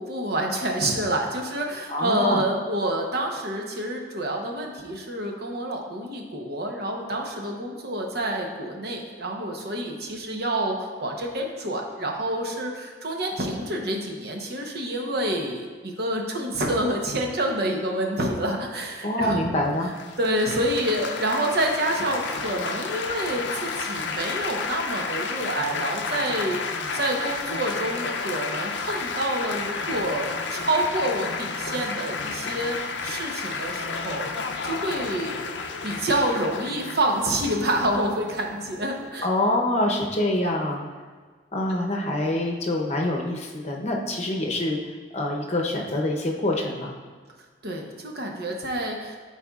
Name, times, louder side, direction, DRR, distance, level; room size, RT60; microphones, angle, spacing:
voice 1, 0.0-19.5 20.2-26.6 26.9-34.3 34.6-35.5 35.8-39.3 47.6-49.2, right 1 dB, 55° right, 1 dB, 0.9 m, -28 dB
voice 2, 1.9-2.4 19.0-19.9 39.2-40.8 41.5-44.8 45.1-46.9, left 1 dB, 35° left, 0 dB, 0.8 m, -25 dB
Laughter / Applause / Chatter, 20.0-39.1, left 4 dB, 75° left, 0.5 m, -32 dB
12.5 x 4.2 x 2.4 m, 1.5 s
head